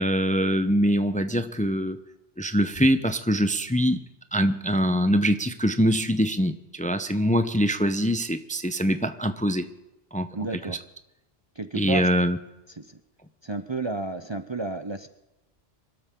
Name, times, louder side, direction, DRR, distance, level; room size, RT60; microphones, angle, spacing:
voice 1, 0.0-2.0 2.4-4.0 4.3-9.7 10.1-10.3 11.7-12.4, equal, 10° left, 10 dB, 0.7 m, -23 dB
voice 2, 10.3-10.8 11.6-12.0 12.8-13.0 13.4-15.1, right 3 dB, 30° right, 9 dB, 0.7 m, -31 dB
25.0 x 12.5 x 3.8 m, 0.97 s
omnidirectional pair, 1.1 m